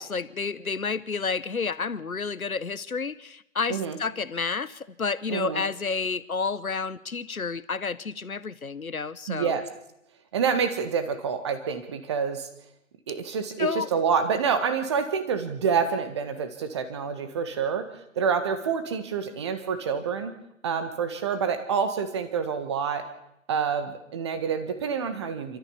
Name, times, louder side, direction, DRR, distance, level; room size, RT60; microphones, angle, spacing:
voice 1, 0.0-9.6 13.6-13.9, left 5 dB, 80° left, 17 dB, 1.0 m, -30 dB
voice 2, 5.3-5.6 9.3-9.6 10.3-12.5 13.1-17.9 18.1-20.3 20.6-23.1 23.5-25.6, right 6 dB, 20° right, 9 dB, 1.5 m, -27 dB
28.5 x 13.5 x 7.1 m, 0.82 s
figure-of-eight pair, 145°, 42 cm